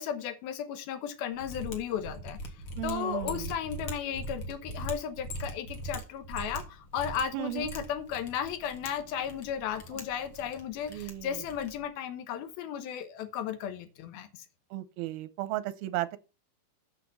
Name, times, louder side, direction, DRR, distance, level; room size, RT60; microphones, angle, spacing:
voice 1, 0.0-2.4 2.8-14.4, left 8 dB, 85° left, 3.0 m, -35 dB
Mechanisms, 1.4-11.9, right 1 dB, 45° left, 2.1 m, -42 dB
voice 2, 2.8-3.5 7.3-7.7 10.9-11.4 14.7-16.2, right 15 dB, 90° right, 2.7 m, -35 dB
8.2 x 6.6 x 5.8 m
omnidirectional pair, 4.2 m